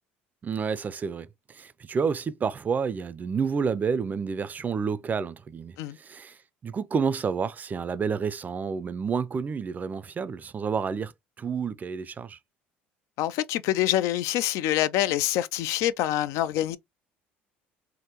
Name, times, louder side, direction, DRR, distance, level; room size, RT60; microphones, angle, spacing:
voice 1, 0.4-12.4, right 6 dB, 30° right, 0.4 m, -30 dB
voice 2, 13.2-16.8, left 13 dB, 70° left, 0.3 m, -26 dB
3.6 x 2.1 x 2.9 m
hypercardioid pair, 75°, 5 cm